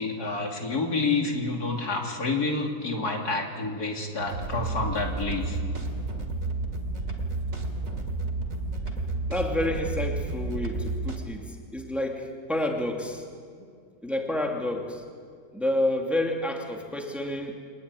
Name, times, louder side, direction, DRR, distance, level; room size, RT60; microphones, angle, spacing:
voice 1, 0.0-5.6, left 3 dB, 65° left, 1 dB, 3.4 m, -28 dB
sound 1, 4.2-11.2, right 2 dB, 55° right, 3.0 m, -31 dB
voice 2, 9.3-13.2 14.0-15.0 15.5-17.6, left 1 dB, ahead, 1 dB, 2.5 m, -29 dB
25.0 x 20.5 x 9.7 m, 2.2 s
omnidirectional pair, 1.8 m